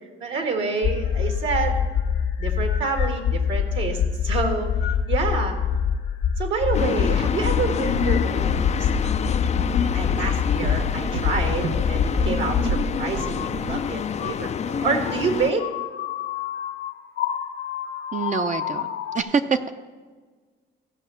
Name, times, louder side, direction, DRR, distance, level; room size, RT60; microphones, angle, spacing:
voice 1, 0.2-1.8 2.4-4.7 5.1-5.5 6.4-9.5 9.8-15.7, right 4 dB, 65° right, 4 dB, 1.7 m, -28 dB
sound 1, 0.8-12.7 13.1-19.2, left 7 dB, 80° left, 1.4 m, -25 dB
sound 2, 6.7-15.5, left 7 dB, 35° left, 0.4 m, -28 dB
Walk footsteps, 7.7-13.8, right 3 dB, 90° right, 1.0 m, -32 dB
voice 2, 18.1-18.9 19.1-19.7, right 5 dB, 40° right, 7 dB, 0.6 m, -24 dB
16.0 x 5.4 x 6.7 m, 1.4 s
cardioid pair, 90°, 20 cm